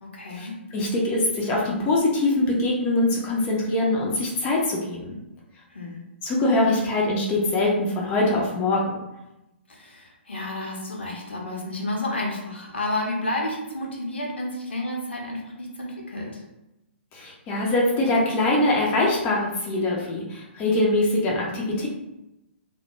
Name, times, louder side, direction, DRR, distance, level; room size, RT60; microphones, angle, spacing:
voice 1, 0.0-0.5 5.7-6.0 9.7-16.4, left 1 dB, 70° left, -2 dB, 0.7 m, -31 dB
voice 2, 0.7-5.1 6.2-8.8 17.1-21.9, left 2 dB, 20° left, -3 dB, 0.4 m, -23 dB
2.1 x 2.1 x 2.8 m, 0.93 s
figure-of-eight pair, 120°, 6 cm